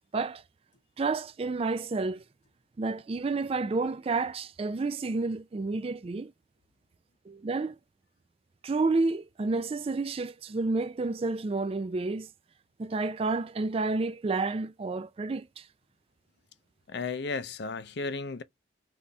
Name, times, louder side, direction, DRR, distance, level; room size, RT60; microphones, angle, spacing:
voice 1, 1.0-2.2 2.8-6.3 7.3-7.8 8.6-12.3 12.8-15.7, right 3 dB, 30° right, 0.4 m, -30 dB
voice 2, 16.9-18.4, left 4 dB, 65° left, 0.5 m, -34 dB
4.0 x 3.2 x 3.4 m
head